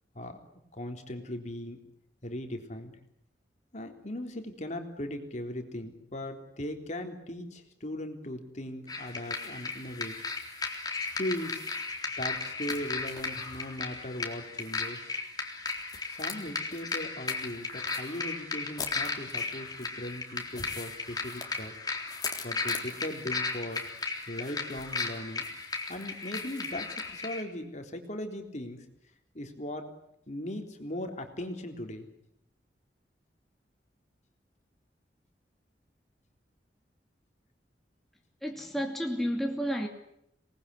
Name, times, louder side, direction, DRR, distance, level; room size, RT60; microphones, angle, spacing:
voice 1, 0.7-1.8 2.2-2.9 3.7-10.2 11.2-11.6 12.2-15.2 16.1-21.7 22.4-23.8 24.3-25.5 25.9-28.9 29.3-29.9 30.3-32.1, left 1 dB, 45° left, 3.6 m, -38 dB
sound 1, 8.9-27.4, left 4 dB, 25° left, 3.7 m, -35 dB
voice 2, 38.4-39.9, equal, ahead, 2.7 m, -31 dB
26.5 x 20.0 x 9.8 m
head